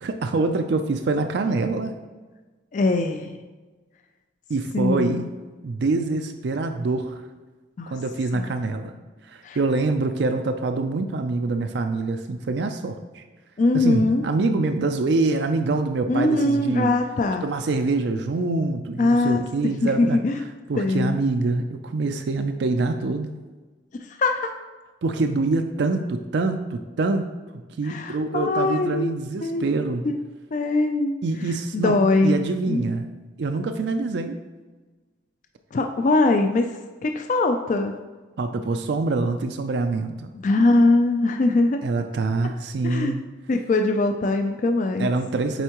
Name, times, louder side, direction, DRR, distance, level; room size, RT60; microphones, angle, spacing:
voice 1, 0.0-1.9 4.5-5.2 5.6-7.1 7.9-9.0 9.2-13.2 13.7-16.9 17.4-20.2 20.7-23.3 25.0-30.0 31.2-33.1 33.4-34.4 38.4-40.3 41.8-43.2 45.0-45.6, right 3 dB, 60° right, 6 dB, 0.4 m, -25 dB
voice 2, 2.7-3.3 4.7-5.3 7.8-7.9 8.3-8.5 9.4-9.6 13.6-14.2 16.1-17.4 19.0-20.4 20.8-21.2 24.1-24.5 27.8-29.7 30.0-30.1 30.5-31.2 31.7-32.4 32.7-32.8 35.7-36.7 37.0-37.9 40.4-41.8 42.8-43.1 43.5-45.1, left 2 dB, 40° left, 5 dB, 0.3 m, -22 dB
8.0 x 4.4 x 2.9 m, 1.3 s
head